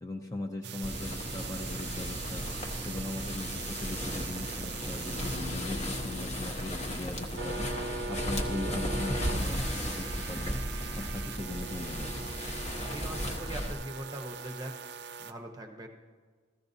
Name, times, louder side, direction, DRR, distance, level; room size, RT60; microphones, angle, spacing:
voice 1, 0.0-2.5 2.8-7.7 8.1-10.6 10.9-12.1, left 2 dB, 15° left, 2 dB, 0.6 m, -39 dB
sound 1, 0.6-15.3, right 5 dB, 55° right, 0.4 m, -41 dB
sound 2, 0.8-13.7, equal, 35° left, 1.0 m, -35 dB
sound 3, 5.1-11.2 11.6-11.7, left 2 dB, 60° left, 0.6 m, -47 dB
voice 2, 12.8-14.8 15.2-15.9, right 1 dB, 20° right, 3 dB, 0.8 m, -41 dB
15.0 x 14.0 x 2.7 m, 1.5 s
head